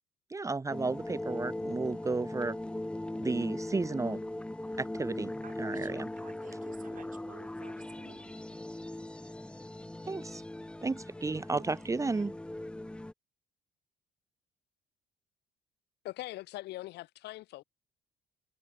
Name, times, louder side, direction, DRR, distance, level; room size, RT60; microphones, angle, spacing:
voice 1, 0.3-2.6 3.2-4.2 4.8-5.3 5.6-6.1 10.1-10.4 10.8-12.3, right 3 dB, 20° right, 1.9 m, -33 dB
sound 1, 0.7-13.1, left 1 dB, 5° left, 0.8 m, -39 dB
voice 2, 5.4-8.6 11.5-12.3, right 9 dB, 50° right, 7.3 m, -55 dB
voice 3, 16.0-17.6, left 17 dB, 80° left, 7.1 m, -41 dB
cardioid pair, 110°, 17 cm